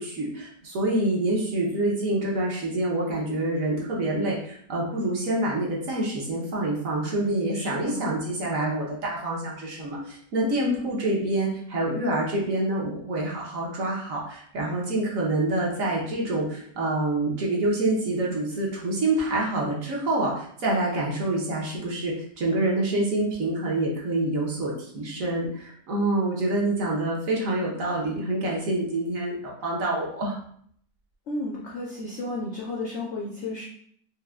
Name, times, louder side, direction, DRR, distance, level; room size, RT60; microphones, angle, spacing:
voice 1, 0.0-30.4, right 2 dB, 60° right, -3 dB, 1.0 m, -27 dB
voice 2, 7.5-8.1 10.4-10.8 31.3-33.6, left 2 dB, 85° left, -3 dB, 0.6 m, -33 dB
4.8 x 2.1 x 2.2 m, 0.62 s
omnidirectional pair, 1.8 m